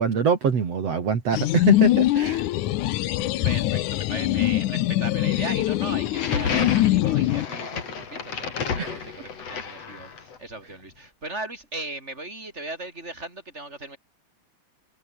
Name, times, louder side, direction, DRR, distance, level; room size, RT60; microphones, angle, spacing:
voice 1, 0.0-2.5 8.8-9.1, right 6 dB, 55° right, 3.9 m, -24 dB
sound 1, 1.3-7.5, left 15 dB, 85° left, 2.4 m, -23 dB
voice 2, 3.4-14.0, right 2 dB, 20° right, 7.2 m, -37 dB
sound 2, 6.0-10.4, left 6 dB, 55° left, 4.0 m, -31 dB
omnidirectional pair, 3.4 m